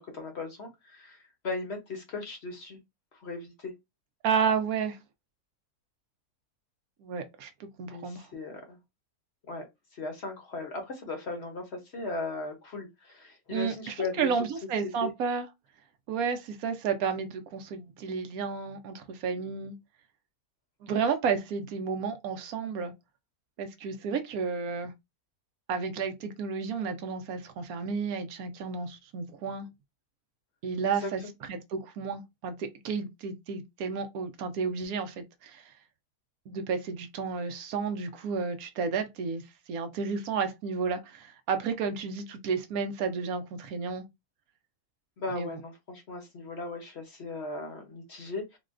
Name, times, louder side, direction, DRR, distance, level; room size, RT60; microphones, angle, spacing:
voice 1, 0.0-2.8 3.1-3.7 7.9-8.8 9.5-9.6 9.9-14.5 15.0-15.1 31.0-31.3 45.2-48.6, left 3 dB, 50° left, 0.9 m, -37 dB
voice 2, 4.2-5.0 7.0-8.3 13.5-15.5 16.1-19.7 20.8-22.9 23.6-24.9 25.7-29.7 30.6-31.2 31.5-35.6 36.5-39.4 39.7-44.0 45.3-45.5, right 5 dB, 75° right, 1.1 m, -32 dB
3.9 x 2.2 x 2.4 m
omnidirectional pair, 1.6 m